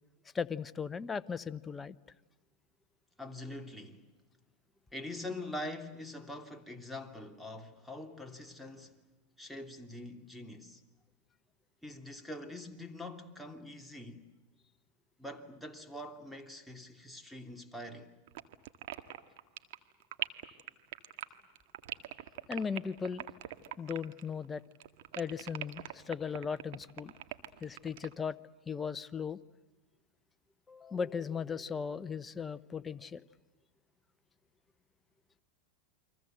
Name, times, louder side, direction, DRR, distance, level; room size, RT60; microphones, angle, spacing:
voice 1, 0.3-2.0 22.5-23.3 23.8-24.6 25.2-27.1 27.6-28.4 28.7-29.4 30.7-33.2, left 6 dB, 20° left, 1.0 m, -37 dB
voice 2, 3.2-4.1 4.9-9.0 9.4-10.8 11.8-14.2 15.2-18.1, left 1 dB, ahead, 2.9 m, -44 dB
sound 1, 18.3-24.4 24.7-28.1, right 14 dB, 60° right, 1.8 m, -42 dB
29.5 x 24.0 x 7.9 m
hypercardioid pair, 100°, 0 cm